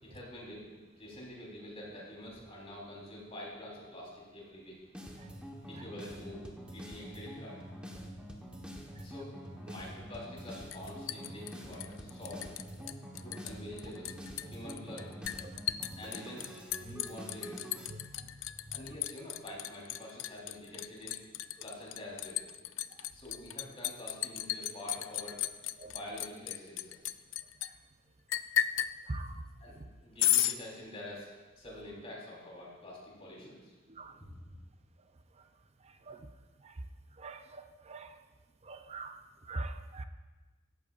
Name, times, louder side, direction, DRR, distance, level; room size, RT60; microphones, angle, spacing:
voice 1, 0.0-4.8 5.7-7.6 9.0-9.3 9.6-12.5 13.2-14.1 14.5-15.2 16.0-16.5 16.8-17.7 18.7-21.2 21.6-22.7 23.1-25.4 25.8-27.0 29.6-31.3 31.6-33.7 34.1-34.5, left 1 dB, 30° left, -4 dB, 4.1 m, -46 dB
sound 1, 4.9-17.9, equal, 5° right, 1.3 m, -46 dB
Liquid, 10.7-12.6 12.9-13.5 13.8-27.7 28.3-28.9 30.2-30.6, left 12 dB, 70° left, 0.5 m, -34 dB
voice 2, 38.7-39.1 39.5-40.0, right 2 dB, 30° right, 8 dB, 0.7 m, -39 dB
17.5 x 14.0 x 2.6 m, 1.2 s
head